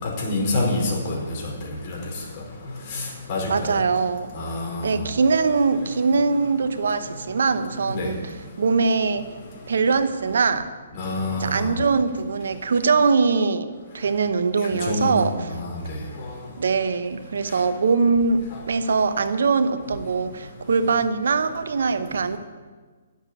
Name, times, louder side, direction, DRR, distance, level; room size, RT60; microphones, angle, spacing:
voice 1, 0.0-0.8 1.1-1.2 1.9-2.0 2.9-3.0 3.3-3.8 4.3-4.9 7.9-8.1 11.0-11.7 14.9-15.1 15.6-15.8, left 2 dB, 40° left, -2 dB, 4.7 m, -26 dB
voice 2, 3.5-4.3 4.8-9.3 9.7-10.7 11.4-15.5 16.6-22.4, right 4 dB, 70° right, 10 dB, 1.0 m, -22 dB
11.0 x 7.4 x 9.9 m, 1.4 s
figure-of-eight pair, 135°, 0 cm